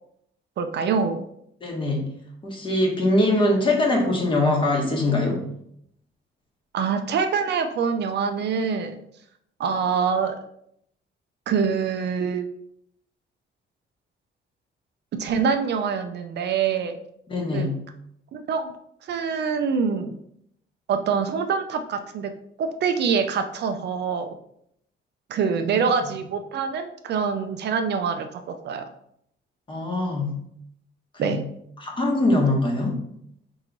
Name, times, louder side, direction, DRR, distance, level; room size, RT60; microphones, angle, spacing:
voice 1, 0.6-1.3 6.7-9.0 9.6-10.4 11.5-12.5 15.1-17.0 17.5-17.7 18.3-18.7 19.1-20.1 20.9-22.3 22.6-24.3 25.3-28.9 31.2-31.4, right 6 dB, 55° right, 7 dB, 0.4 m, -25 dB
voice 2, 1.6-2.1 2.4-5.4 17.3-17.8 25.5-25.7 29.7-30.3 31.1-31.4 31.8-33.0, left 2 dB, 25° left, 0 dB, 1.0 m, -22 dB
4.5 x 3.0 x 3.9 m, 0.73 s
cardioid pair, 165°, 21 cm